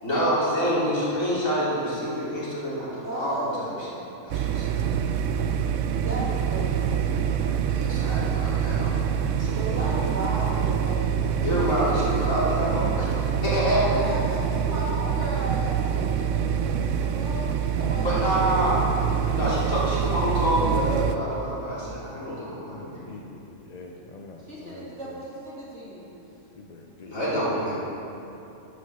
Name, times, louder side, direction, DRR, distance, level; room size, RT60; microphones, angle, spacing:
voice 1, 0.0-3.9 4.2-4.8 7.7-8.9 9.4-9.9 11.4-13.1 13.4-13.9 18.0-18.8 19.3-23.1 27.1-27.7, equal, 70° left, -9 dB, 3.6 m, -27 dB
voice 2, 3.0-4.0 6.0-7.2 9.5-11.3 13.8-18.3 18.7-19.3 24.4-26.2, right 1 dB, 55° right, -6 dB, 2.7 m, -35 dB
sound 1, 4.3-21.2, right 8 dB, 70° right, 0.9 m, -25 dB
voice 3, 22.6-23.2 23.6-25.2 26.6-27.7, left 3 dB, 45° left, 1 dB, 0.5 m, -45 dB
11.5 x 6.3 x 6.7 m, 2.9 s
omnidirectional pair, 1.5 m